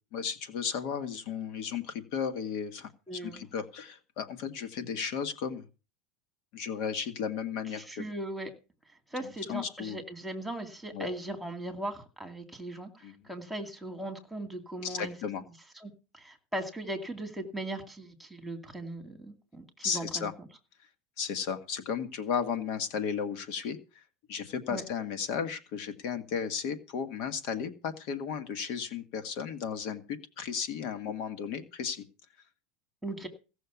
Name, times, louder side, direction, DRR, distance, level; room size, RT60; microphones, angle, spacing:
voice 1, 0.1-5.6 6.5-8.0 9.2-10.0 10.9-11.1 13.0-13.2 14.8-15.4 19.8-20.3 21.2-24.0 24.3-32.0, left 7 dB, 55° left, 9 dB, 1.6 m, -34 dB
voice 2, 3.1-3.4 7.8-8.5 9.1-15.1 15.8-20.3 24.7-24.8 33.0-33.3, right 1 dB, ahead, 3 dB, 2.4 m, -38 dB
16.5 x 6.5 x 7.1 m, 0.34 s
supercardioid pair, 155°, 0 cm